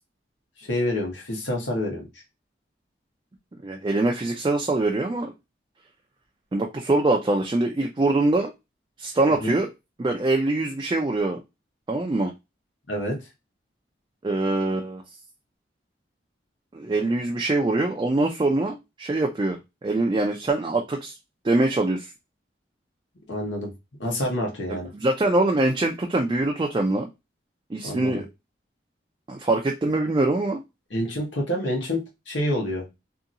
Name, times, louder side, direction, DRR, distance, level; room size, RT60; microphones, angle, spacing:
voice 1, 0.6-2.1 9.4-9.5 12.9-13.2 23.3-23.7 24.0-24.9 27.8-28.2 30.9-32.0 32.3-32.8, left 1 dB, 85° left, 1.1 m, -27 dB
voice 2, 3.6-5.3 6.5-8.5 9.0-9.7 10.0-11.4 11.9-12.3 14.2-15.0 16.7-21.1 21.4-22.1 24.7-27.1 27.7-28.3 29.3-30.6, right 2 dB, 25° right, 0.3 m, -23 dB
2.7 x 2.7 x 2.5 m
head